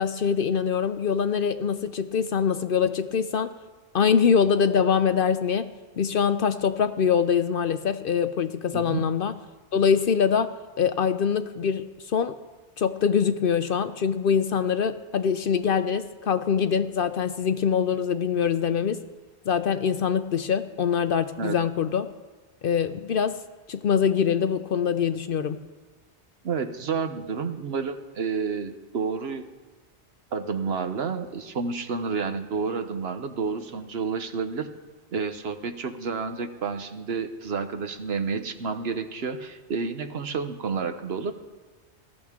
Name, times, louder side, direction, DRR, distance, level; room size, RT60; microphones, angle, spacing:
voice 1, 0.0-3.5 3.9-9.3 9.7-12.3 12.8-19.0 19.5-22.1 22.6-23.4 23.7-25.6, left 7 dB, 60° left, 11 dB, 0.7 m, -24 dB
voice 2, 8.7-9.1 21.4-21.6 26.4-29.5 30.3-34.7 35.1-41.3, right 5 dB, 65° right, 9 dB, 1.1 m, -30 dB
19.5 x 14.5 x 3.6 m, 1.3 s
omnidirectional pair, 1.2 m